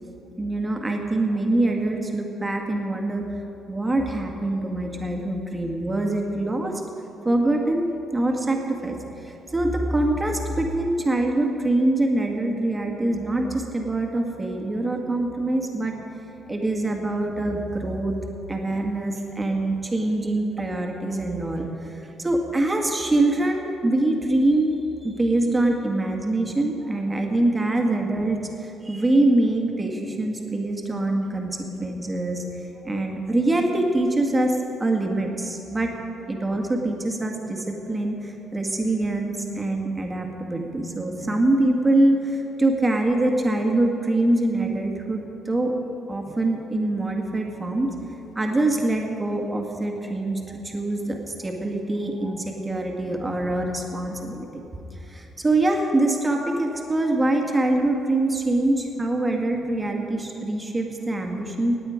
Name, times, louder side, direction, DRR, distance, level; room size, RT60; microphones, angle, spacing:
voice 1, 0.4-3.3 3.7-6.8 7.2-16.0 16.5-18.2 18.5-24.8 25.0-32.4 32.8-35.9 36.3-45.7 46.1-47.9 48.4-54.6 55.1-61.7, right 2 dB, 20° right, 2 dB, 1.8 m, -24 dB
18.0 x 8.9 x 5.1 m, 2.9 s
cardioid pair, 90°, 0 cm